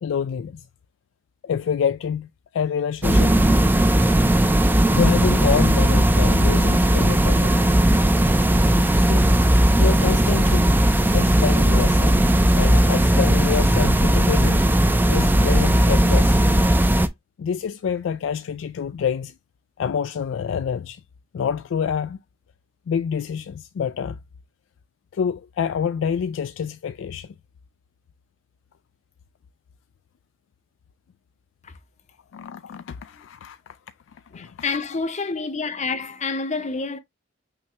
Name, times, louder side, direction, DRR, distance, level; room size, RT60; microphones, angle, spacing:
voice 1, 0.0-0.6 1.4-2.3 2.5-3.4 4.9-7.6 9.0-9.3 9.8-10.7 11.1-12.2 12.5-14.6 15.1-16.6 17.4-19.3 19.8-21.0 21.3-22.2 22.9-24.2 25.1-27.3 32.3-33.6 34.3-34.5, left 7 dB, 85° left, 0.3 m, -27 dB
sound 1, 3.0-17.1, right 1 dB, 10° right, 0.5 m, -17 dB
voice 2, 34.3-37.0, left 4 dB, 40° left, 0.7 m, -28 dB
5.8 x 2.8 x 3.3 m
head